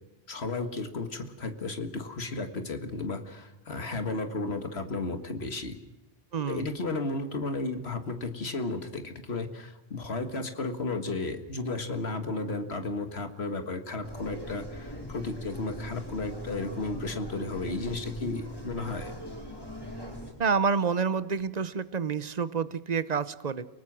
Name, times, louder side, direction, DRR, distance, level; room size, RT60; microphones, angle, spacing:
voice 1, 0.3-5.8 6.5-19.1, left 3 dB, 80° left, 7 dB, 2.0 m, -33 dB
voice 2, 6.3-6.6 20.4-23.7, right 5 dB, 45° right, 15 dB, 0.9 m, -28 dB
sound 1, 14.0-20.3, equal, 20° left, 4.2 m, -40 dB
30.0 x 19.0 x 6.2 m, 1.0 s
omnidirectional pair, 1.1 m